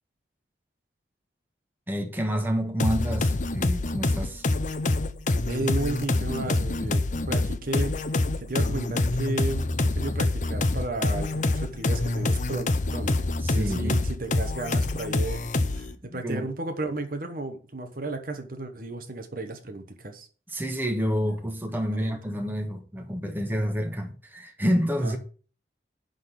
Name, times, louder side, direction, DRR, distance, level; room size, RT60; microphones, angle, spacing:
voice 1, 1.9-4.4 13.4-14.0 16.1-16.5 20.5-25.2, equal, 10° right, 1.3 m, -28 dB
sound 1, 2.8-15.9, left 2 dB, 45° left, 0.7 m, -26 dB
voice 2, 5.5-8.0 8.5-20.3 21.9-22.1 25.0-25.2, right 2 dB, 50° right, 1.2 m, -34 dB
10.5 x 4.0 x 6.9 m
head